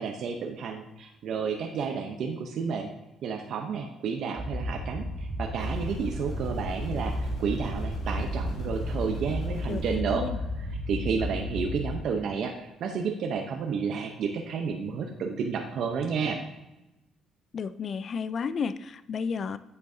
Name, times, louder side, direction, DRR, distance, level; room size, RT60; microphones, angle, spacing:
voice 1, 0.0-2.9 3.2-10.3 10.9-16.4, right 6 dB, 65° right, 3 dB, 0.7 m, -31 dB
sound 1, 4.4-11.9, left 1 dB, 25° right, 2.5 m, -33 dB
sound 2, 5.6-10.0, equal, 80° left, 2.3 m, -40 dB
voice 2, 9.7-10.4 17.5-19.6, left 5 dB, 45° left, 14 dB, 0.4 m, -32 dB
8.4 x 6.8 x 2.7 m, 0.96 s
cardioid pair, 100°, 0 cm